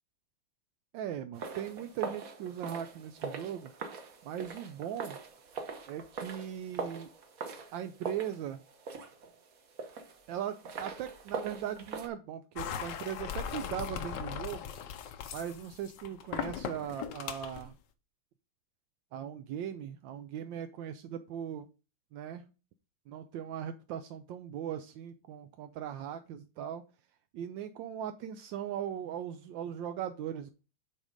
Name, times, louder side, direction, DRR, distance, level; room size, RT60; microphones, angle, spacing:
voice 1, 0.9-3.7 4.2-5.2 5.9-7.1 7.7-8.6 10.3-14.7 15.3-17.7 19.1-21.7 22.1-22.5 23.1-26.8 27.3-30.5, right 9 dB, 80° right, 8 dB, 1.3 m, -39 dB
sound 1, 1.3-12.1, right 4 dB, 55° right, 1.3 m, -42 dB
sound 2, 12.6-17.7, left 8 dB, 70° left, 1.3 m, -39 dB
8.4 x 3.7 x 5.1 m, 0.33 s
omnidirectional pair, 2.0 m